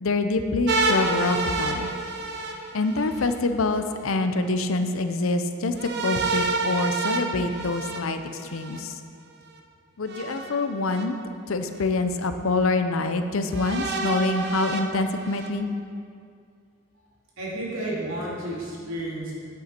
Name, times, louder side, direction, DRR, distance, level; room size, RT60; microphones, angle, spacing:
voice 1, 0.0-1.9 2.7-9.0 10.0-11.1 11.5-15.7, left 3 dB, 75° left, 8 dB, 0.6 m, -26 dB
sound 1, 0.7-3.3 5.8-8.8 10.1-11.0 11.8-11.9 13.5-15.5, right 3 dB, 50° right, 0.8 m, -28 dB
voice 2, 17.4-19.3, right 1 dB, 75° right, -5 dB, 2.5 m, -31 dB
9.0 x 8.6 x 4.4 m, 2.3 s
head